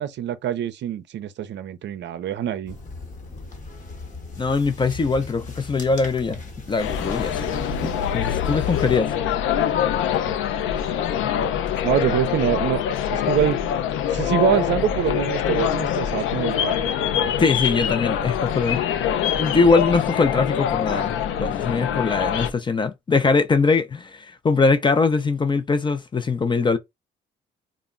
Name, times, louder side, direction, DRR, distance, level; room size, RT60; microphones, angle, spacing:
voice 1, 0.0-2.8 10.3-10.4 11.8-12.8 13.1-13.6 14.1-17.5, right 10 dB, 65° right, 0.5 m, -25 dB
sound 1, 2.7-9.0, left 3 dB, 40° left, 1.0 m, -36 dB
voice 2, 4.4-6.4 6.7-7.7 8.1-9.1 17.4-18.8 19.4-26.8, left 4 dB, 25° left, 0.4 m, -22 dB
sound 2, 6.8-22.5, left 9 dB, 85° left, 0.5 m, -24 dB
2.2 x 2.0 x 3.6 m
cardioid pair, 90°, 20 cm